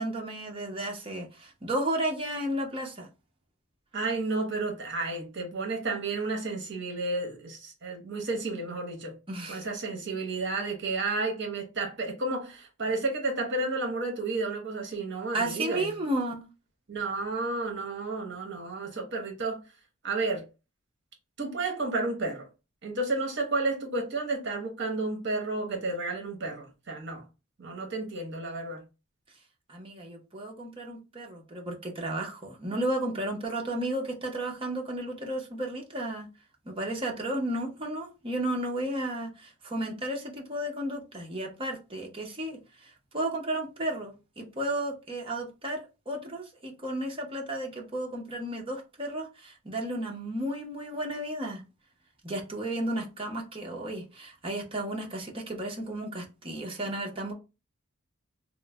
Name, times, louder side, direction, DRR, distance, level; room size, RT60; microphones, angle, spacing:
voice 1, 0.0-3.1 9.3-9.7 15.3-16.5 29.7-36.3 36.7-51.6 52.2-57.3, right 1 dB, 25° right, 0.6 m, -33 dB
voice 2, 3.9-9.2 9.5-15.9 16.9-19.6 20.0-20.5 21.4-22.5 22.8-27.2 27.6-28.8, right 3 dB, 55° right, 0.9 m, -32 dB
3.0 x 2.1 x 3.3 m
head